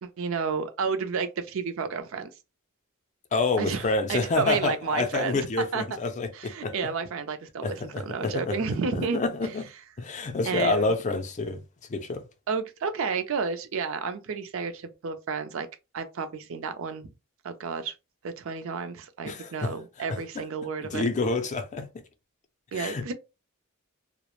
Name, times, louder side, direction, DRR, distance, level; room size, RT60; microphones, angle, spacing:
voice 1, 0.0-2.3 3.6-5.5 5.7-5.8 6.3-7.8 8.1-9.2 10.4-10.9 12.5-15.7 15.9-17.1 17.4-17.9 18.2-21.1 22.7-23.1, right 5 dB, 65° right, 0.4 m, -31 dB
voice 2, 3.3-6.7 7.6-8.6 8.9-9.6 10.0-11.6 11.9-12.2 19.2-19.7 20.8-21.9 22.7-23.1, left 3 dB, 35° left, 0.4 m, -28 dB
2.3 x 2.0 x 3.0 m
head